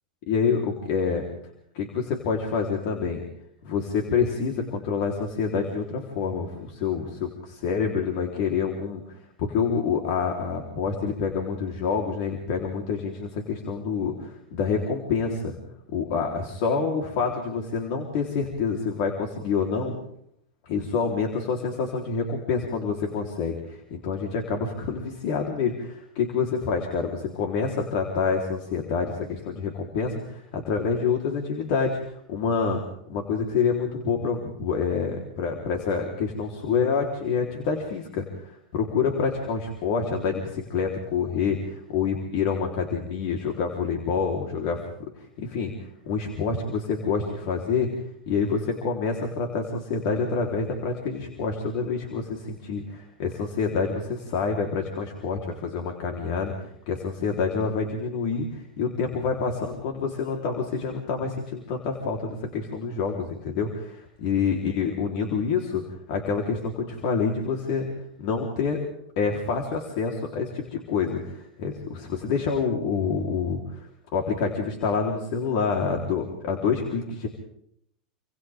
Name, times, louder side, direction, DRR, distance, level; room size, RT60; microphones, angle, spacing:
voice 1, 0.3-1.2 1.7-3.2 3.6-15.5 15.9-20.0 20.7-32.8 33.1-44.8 45.2-47.9 48.3-65.8 66.1-67.9 68.2-68.8 69.2-77.3, left 5 dB, 60° left, 1 dB, 4.1 m, -27 dB
28.5 x 27.0 x 3.8 m, 0.71 s
hypercardioid pair, 105°, 4 cm